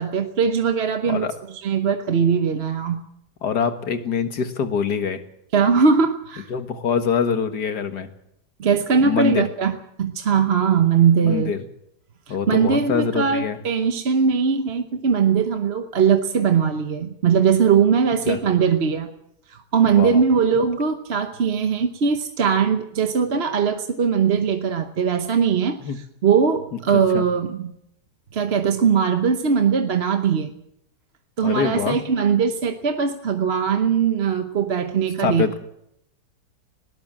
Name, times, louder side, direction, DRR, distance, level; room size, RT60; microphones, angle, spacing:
voice 1, 0.0-3.0 5.5-6.5 8.6-11.5 12.3-19.1 19.5-27.7 28.3-30.5 31.4-35.6, right 6 dB, 45° right, 7 dB, 1.1 m, -20 dB
voice 2, 3.4-5.2 6.5-8.1 9.0-9.4 11.2-11.6 12.3-13.6 18.3-18.4 19.9-20.2 25.8-26.0 26.9-27.3 31.4-32.0 35.2-35.6, left 6 dB, 70° left, 8 dB, 2.1 m, -24 dB
19.5 x 18.0 x 7.5 m, 0.78 s
omnidirectional pair, 1.8 m